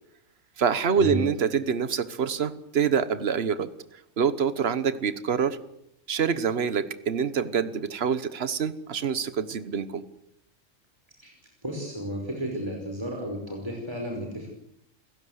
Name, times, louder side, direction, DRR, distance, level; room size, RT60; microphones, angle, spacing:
voice 1, 0.6-3.7 4.2-5.6 6.1-10.0, right 7 dB, 55° right, 13 dB, 1.4 m, -26 dB
voice 2, 11.6-14.5, equal, 20° right, 1 dB, 5.3 m, -32 dB
29.0 x 16.0 x 8.1 m, 0.78 s
omnidirectional pair, 1.3 m